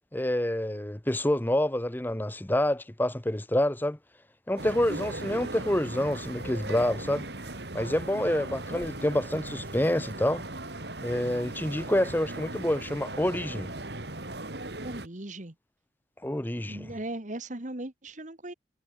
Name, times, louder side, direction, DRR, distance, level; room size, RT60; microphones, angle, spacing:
voice 1, 0.1-4.0 4.5-7.2 7.7-10.4 11.0-13.7 16.2-16.9, left 1 dB, 10° left, 0.8 m, -27 dB
sound 1, 4.6-15.1, right 2 dB, 60° right, 3.4 m, -38 dB
voice 2, 14.8-15.5 16.7-18.5, right 1 dB, 40° right, 1.6 m, -38 dB
head